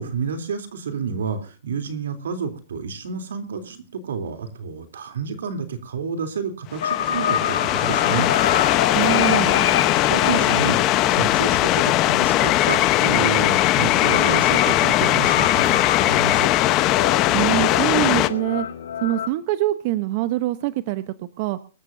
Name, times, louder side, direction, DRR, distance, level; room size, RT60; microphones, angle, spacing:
voice 1, 0.0-8.3 9.3-10.8 11.1-16.5, right 6 dB, 80° right, 8 dB, 3.3 m, -30 dB
sound 1, 6.7-18.3, left 15 dB, 30° left, 0.9 m, -19 dB
sound 2, 6.8-19.3, left 9 dB, 75° left, 2.1 m, -28 dB
voice 2, 8.9-9.5 17.3-18.7 19.0-21.6, right 16 dB, 40° right, 12 dB, 0.9 m, -24 dB
25.0 x 13.5 x 2.7 m, 0.35 s
hypercardioid pair, 155°, 0 cm